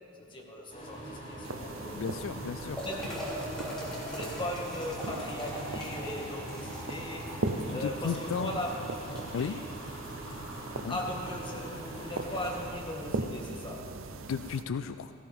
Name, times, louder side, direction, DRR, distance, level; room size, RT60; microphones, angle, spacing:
voice 1, 0.2-2.2 2.7-3.7 4.0-7.4 7.7-8.8 9.2-9.6 10.6-14.0, left 1 dB, 25° left, -2 dB, 1.9 m, -39 dB
sound 1, 0.7-12.6, equal, 40° left, 3.8 m, -43 dB
sound 2, 0.9-13.9, equal, 5° left, 3.0 m, -44 dB
sound 3, 1.4-14.6, right 3 dB, 85° right, 0.7 m, -40 dB
voice 2, 1.9-2.8 7.7-8.6 9.3-9.6 10.8-11.0 14.3-15.1, left 6 dB, 75° left, 11 dB, 0.3 m, -34 dB
17.0 x 15.5 x 3.6 m, 2.7 s
head